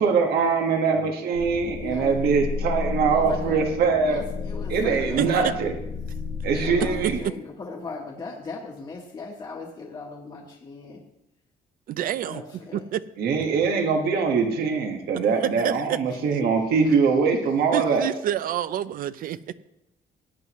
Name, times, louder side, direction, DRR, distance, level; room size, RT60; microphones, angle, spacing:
voice 1, 0.0-4.2 4.7-5.8 6.4-7.2 13.2-18.1, right 5 dB, 90° right, 3 dB, 1.5 m, -22 dB
sound 1, 1.3-7.2, left 5 dB, 50° left, 1.6 m, -32 dB
voice 2, 1.8-2.1 3.1-3.6 4.1-5.4 6.6-11.0 12.2-12.8 16.4-16.5, left 4 dB, 30° left, -2 dB, 1.2 m, -38 dB
voice 3, 11.9-12.4 12.7-13.0 15.6-16.0 17.7-19.4, right 11 dB, 65° right, 15 dB, 0.5 m, -27 dB
17.5 x 9.4 x 3.1 m, 0.86 s
cardioid pair, 160°, 16 cm